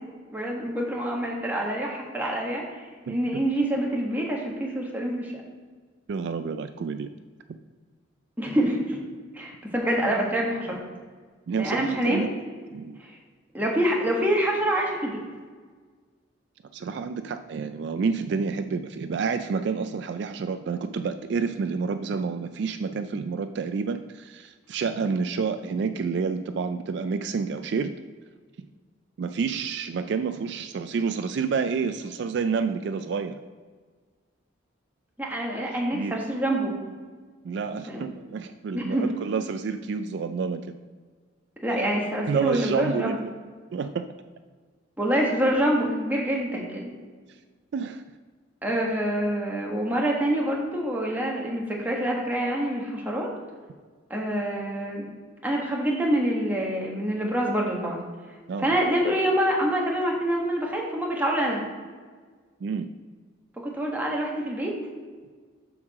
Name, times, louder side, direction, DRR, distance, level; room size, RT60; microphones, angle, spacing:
voice 1, 0.3-5.3 8.4-9.0 9.3-10.8 11.6-12.3 13.0-13.1 13.5-15.2 35.2-36.7 37.9-38.1 38.7-39.1 41.6-43.2 45.0-46.9 48.6-53.3 54.1-55.1 55.4-58.0 58.6-61.6 63.6-64.7, right 1 dB, 10° right, -2 dB, 1.4 m, -26 dB
voice 2, 6.1-7.1 11.5-12.3 12.7-13.0 16.7-27.9 29.2-33.4 35.9-36.1 37.4-40.6 42.3-43.3 43.7-44.1 47.7-48.0 58.5-58.7 62.6-62.9, right 5 dB, 60° right, 9 dB, 0.3 m, -29 dB
7.2 x 4.7 x 6.4 m, 1.5 s
head